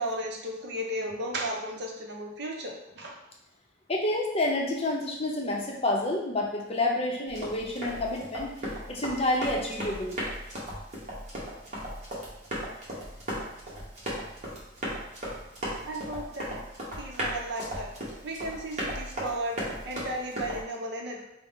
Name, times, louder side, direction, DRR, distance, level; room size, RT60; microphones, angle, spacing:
voice 1, 0.0-3.2 15.8-16.5 17.0-17.9 18.2-21.2, right 1 dB, 60° right, 0 dB, 0.7 m, -34 dB
voice 2, 3.9-8.5 8.9-10.2, left 2 dB, 30° left, -1 dB, 0.6 m, -29 dB
Run, 7.3-20.6, equal, 40° right, 1.1 m, -36 dB
4.5 x 2.1 x 3.6 m, 0.88 s
head